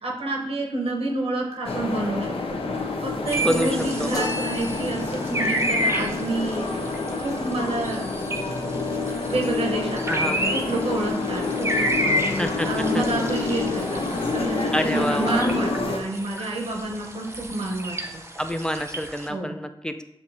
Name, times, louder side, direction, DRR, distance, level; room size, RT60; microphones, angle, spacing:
voice 1, 0.0-2.3 3.0-6.7 7.2-8.1 9.3-14.0 14.3-18.2 19.3-19.6, right 2 dB, 85° right, -1 dB, 1.0 m, -29 dB
sound 1, 1.6-16.0, left 3 dB, 75° left, 0.6 m, -28 dB
sound 2, 3.3-19.3, equal, 25° right, 0.7 m, -31 dB
voice 2, 3.4-4.1 10.1-10.4 12.4-13.0 14.7-15.6 18.4-20.0, equal, 10° left, 6 dB, 0.3 m, -27 dB
sound 3, 4.1-5.4, left 2 dB, 35° left, 1.1 m, -33 dB
7.0 x 2.5 x 2.7 m, 0.87 s
wide cardioid pair, 75°, 10 cm